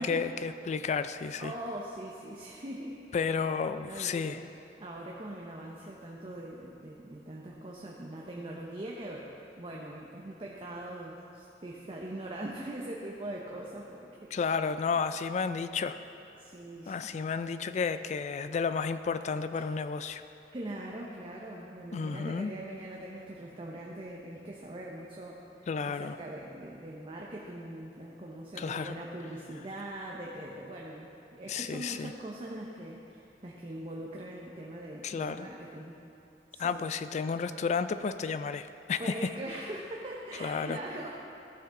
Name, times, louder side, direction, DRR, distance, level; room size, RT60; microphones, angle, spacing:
voice 1, 0.0-1.5 3.1-4.4 14.3-16.0 16.9-20.2 21.9-22.5 25.7-26.2 28.6-29.0 31.5-32.1 35.0-35.5 36.6-39.1 40.4-40.8, left 5 dB, 40° left, 12 dB, 0.3 m, -32 dB
voice 2, 1.4-3.0 3.8-4.4 4.8-14.3 16.4-17.0 19.5-19.6 20.5-25.4 25.8-35.9 36.5-36.9 39.0-41.1, right 1 dB, 30° right, -2 dB, 0.7 m, -42 dB
14.0 x 5.9 x 3.7 m, 2.9 s
head